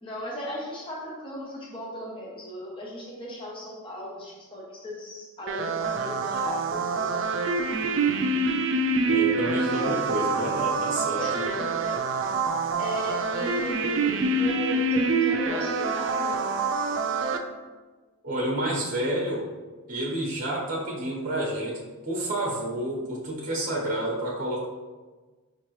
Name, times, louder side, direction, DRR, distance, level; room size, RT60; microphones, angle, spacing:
voice 1, 0.0-7.3 11.2-12.2 12.8-16.4, equal, 25° left, -4 dB, 0.8 m, -37 dB
sound 1, 5.5-17.4, right 3 dB, 55° right, 0.4 m, -26 dB
voice 2, 9.0-11.3 18.2-19.5 19.9-24.7, right 1 dB, 35° right, -4 dB, 0.9 m, -29 dB
5.5 x 2.9 x 3.1 m, 1.3 s
head